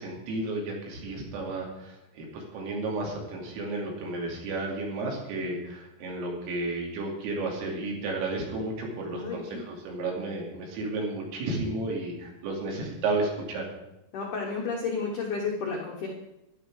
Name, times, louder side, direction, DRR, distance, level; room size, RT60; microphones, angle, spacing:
voice 1, 0.0-13.6, right 2 dB, 80° right, -1 dB, 5.2 m, -32 dB
voice 2, 9.1-9.6 14.1-16.1, left 4 dB, 80° left, -1 dB, 1.8 m, -32 dB
13.5 x 11.0 x 4.9 m, 0.94 s
omnidirectional pair, 5.9 m